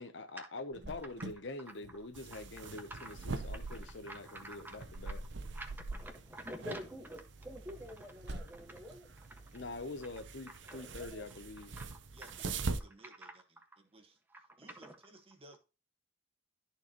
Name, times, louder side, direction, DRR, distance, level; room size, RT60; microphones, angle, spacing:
voice 1, 0.0-5.2 9.5-11.7, left 2 dB, 65° left, 0.8 m, -45 dB
Cricket, 0.7-12.2, right 1 dB, 60° right, 1.3 m, -54 dB
sound 1, 2.2-12.8, right 3 dB, 75° right, 0.8 m, -43 dB
voice 2, 4.1-4.8 5.0-5.1 5.5-9.6 10.6-11.2 11.8-12.3 13.2-13.6 14.3-14.4 14.8-14.9, equal, 10° right, 1.5 m, -48 dB
voice 3, 12.1-13.4 13.8-14.2 14.6-15.6, right 2 dB, 30° right, 1.5 m, -58 dB
13.5 x 4.6 x 3.0 m
head